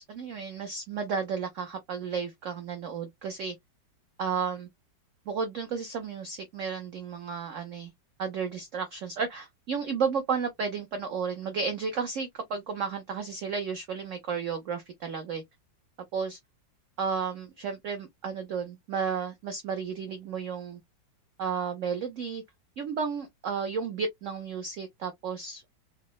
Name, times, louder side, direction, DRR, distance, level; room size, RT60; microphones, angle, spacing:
voice 1, 0.0-3.5 4.2-4.7 5.3-7.9 8.2-15.4 16.1-16.4 17.0-20.8 21.4-22.4 22.8-25.7, right 6 dB, 85° right, 0.6 m, -33 dB
4.1 x 2.0 x 2.2 m
omnidirectional pair, 2.1 m